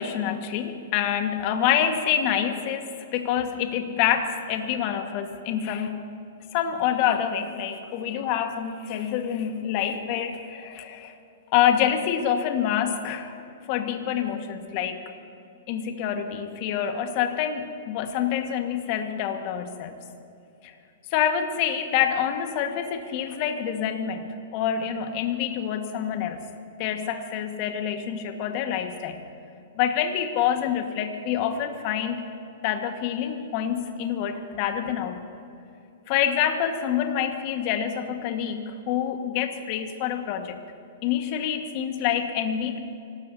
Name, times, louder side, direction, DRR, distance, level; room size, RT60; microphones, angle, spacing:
voice 1, 0.0-6.0 6.5-11.1 11.5-13.4 13.7-15.0 15.7-19.9 20.6-20.7 21.1-26.5 26.8-29.2 29.8-32.2 32.6-35.2 36.1-40.6 41.0-42.8, left 9 dB, 45° left, 6 dB, 1.7 m, -27 dB
25.5 x 18.5 x 2.8 m, 2.6 s
hypercardioid pair, 115°, 0 cm